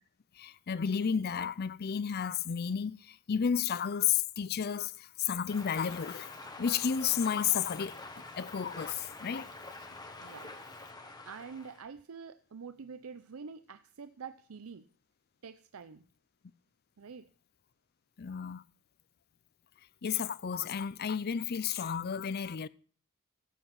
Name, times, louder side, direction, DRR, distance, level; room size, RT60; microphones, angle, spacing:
voice 1, 0.4-8.0 8.4-9.5 18.2-18.6 20.0-22.7, left 7 dB, 45° left, 0.5 m, -32 dB
sound 1, 5.5-11.8, left 2 dB, 20° left, 1.4 m, -47 dB
voice 2, 10.2-10.6 11.2-14.9 15.4-16.1 17.0-17.3, right 5 dB, 80° right, 0.6 m, -46 dB
14.0 x 7.9 x 5.9 m
head